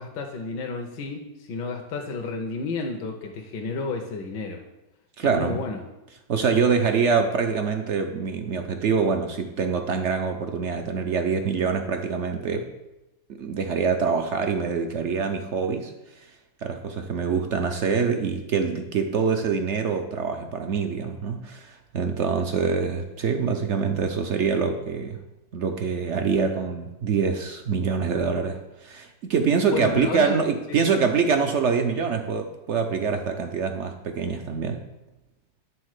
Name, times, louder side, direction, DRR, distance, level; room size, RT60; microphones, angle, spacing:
voice 1, 0.0-4.6 5.2-5.8 29.7-30.4 30.7-30.8, left 4 dB, 80° left, 2 dB, 1.5 m, -31 dB
voice 2, 5.2-5.6 6.3-12.7 13.3-15.9 16.6-25.2 25.5-34.8, right 5 dB, 70° right, 5 dB, 0.7 m, -25 dB
9.6 x 3.9 x 6.5 m, 0.98 s
omnidirectional pair, 1.9 m